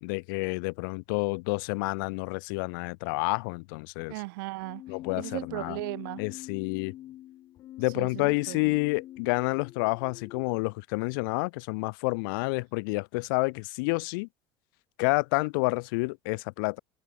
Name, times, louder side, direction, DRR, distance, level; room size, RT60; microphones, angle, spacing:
voice 1, 0.0-4.1 4.9-5.8 6.2-6.9 7.8-14.3 15.0-16.8, left 29 dB, 65° left, 1.2 m, -29 dB
voice 2, 4.1-4.8 5.2-6.2 7.9-8.8, right 24 dB, 75° right, 1.4 m, -37 dB
Keyboard (musical), 4.6-10.6, left 13 dB, 30° left, 0.9 m, -45 dB
cardioid pair, 165°, 12 cm